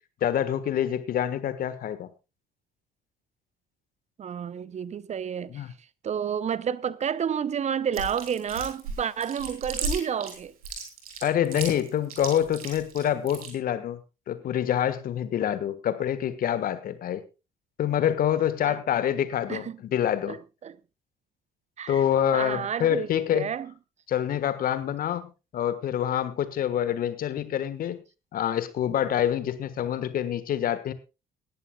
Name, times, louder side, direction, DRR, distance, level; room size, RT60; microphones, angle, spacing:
voice 1, 0.2-2.1 5.5-5.7 11.2-14.0 14.3-17.2 17.8-20.4 21.9-23.5 24.1-25.3 25.5-28.0 28.3-30.9, left 10 dB, 50° left, 1.5 m, -26 dB
voice 2, 4.2-5.6 6.0-10.5 18.7-18.8 19.5-19.8 20.3-20.8 21.8-22.0 22.3-23.1 23.3-23.7, right 8 dB, 40° right, 0.7 m, -30 dB
Chewing mastication, 7.9-13.5, right 4 dB, 80° right, 2.8 m, -35 dB
18.0 x 13.5 x 2.3 m
figure-of-eight pair, 50°, 18 cm